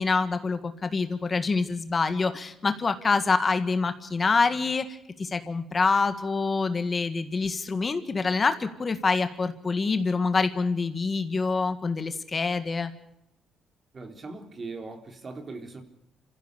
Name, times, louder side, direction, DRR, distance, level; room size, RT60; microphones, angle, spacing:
voice 1, 0.0-4.9 5.2-12.9, left 4 dB, 35° left, 10 dB, 1.8 m, -26 dB
voice 2, 13.9-15.8, right 3 dB, 40° right, 6 dB, 3.7 m, -39 dB
27.5 x 16.0 x 6.7 m, 0.85 s
cardioid pair, 90°, 0 cm